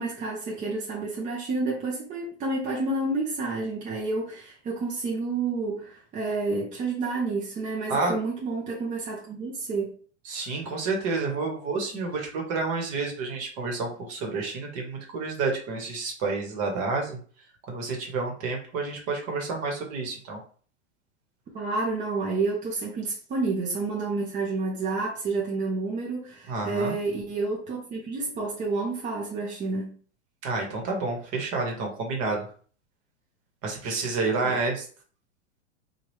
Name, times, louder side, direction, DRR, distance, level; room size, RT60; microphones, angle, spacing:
voice 1, 0.0-9.9 21.5-30.0 34.4-34.6, right 3 dB, 20° right, 0.6 m, -29 dB
voice 2, 10.2-17.2 17.7-20.4 26.5-26.9 30.4-32.5 33.6-34.9, right 3 dB, 45° right, 1.2 m, -29 dB
2.9 x 2.4 x 3.2 m
hypercardioid pair, 120°, 36 cm